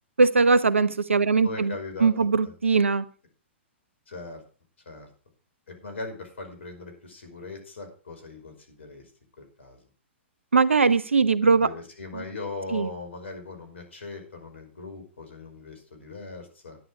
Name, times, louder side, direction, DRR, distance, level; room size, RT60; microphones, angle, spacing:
voice 1, 0.2-1.7 2.0-3.0 10.5-11.7 12.1-12.2 12.7-12.9, right 4 dB, 80° right, 15 dB, 0.9 m, -20 dB
voice 2, 1.4-2.5 4.1-4.4 4.9-5.1 5.7-9.0 9.4-9.8 11.4-16.8, left 3 dB, 70° left, 5 dB, 5.2 m, -39 dB
11.0 x 10.0 x 4.8 m, 0.37 s
figure-of-eight pair, 115°, 7 cm